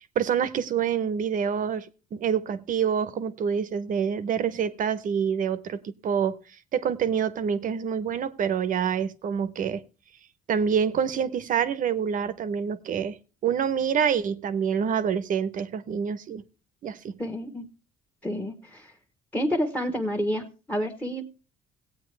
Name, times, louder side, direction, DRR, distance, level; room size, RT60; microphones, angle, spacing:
voice 1, 0.2-6.4 6.7-9.8 10.5-13.2 13.4-16.4 16.8-17.1, right 7 dB, 55° right, 0.8 m, -26 dB
voice 2, 17.2-17.7 18.2-18.9 19.3-21.2, equal, 10° left, 1.2 m, -29 dB
17.5 x 8.6 x 3.3 m
cardioid pair, 110°, 17 cm